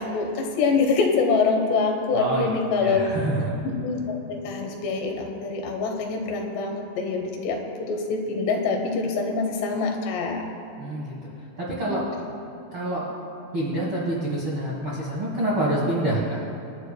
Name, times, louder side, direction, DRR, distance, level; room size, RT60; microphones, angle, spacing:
voice 1, 0.0-3.0 3.6-10.5, left 4 dB, 75° left, 2 dB, 3.3 m, -25 dB
voice 2, 2.1-2.5 2.8-3.6 10.8-11.1 11.6-12.0 12.7-13.0 13.5-16.4, right 1 dB, 65° right, -6 dB, 1.3 m, -26 dB
24.5 x 10.5 x 2.3 m, 3.0 s
omnidirectional pair, 5.1 m